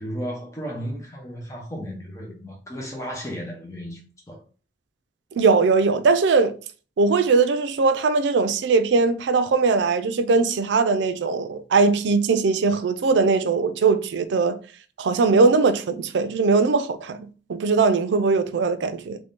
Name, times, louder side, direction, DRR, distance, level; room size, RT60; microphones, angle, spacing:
voice 1, 0.0-4.0 4.3-4.4, equal, 15° left, 0.7 m, -34 dB
voice 2, 5.4-6.6 7.0-14.6 15.0-19.2, right 4 dB, 80° right, 0.4 m, -20 dB
3.1 x 2.6 x 3.6 m
head